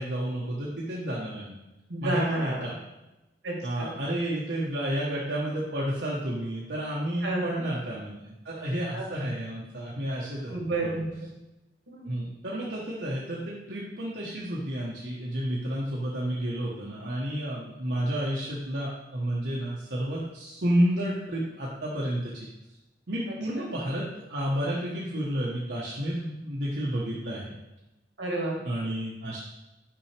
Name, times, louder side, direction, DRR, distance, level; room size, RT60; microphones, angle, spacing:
voice 1, 0.0-1.6 2.0-2.7 3.6-10.5 10.8-11.0 12.1-22.5 23.1-27.5 28.6-29.4, right 1 dB, 65° right, -5 dB, 1.0 m, -31 dB
voice 2, 1.9-2.6 3.4-3.9 7.2-7.7 8.9-9.0 10.5-11.3 11.9-12.2 23.6-23.7 28.2-28.6, right 2 dB, 85° right, -2 dB, 1.9 m, -31 dB
5.9 x 5.5 x 3.3 m, 0.97 s
head